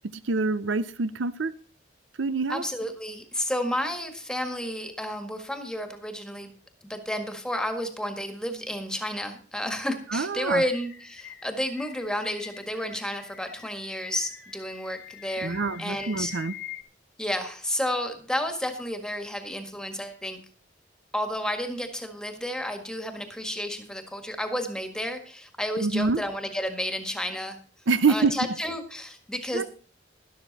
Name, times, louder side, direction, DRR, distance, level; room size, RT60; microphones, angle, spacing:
voice 1, 0.3-1.5 2.2-2.6 10.1-10.6 15.4-16.5 25.8-26.2 27.9-28.3 29.5-29.6, right 4 dB, 85° right, 15 dB, 0.7 m, -25 dB
voice 2, 2.5-6.5 6.8-16.3 17.2-20.4 21.1-27.6 28.1-29.6, equal, 5° left, 6 dB, 1.7 m, -31 dB
sound 1, 10.5-16.8, left 9 dB, 60° left, 1.5 m, -45 dB
12.5 x 12.0 x 4.1 m, 0.41 s
head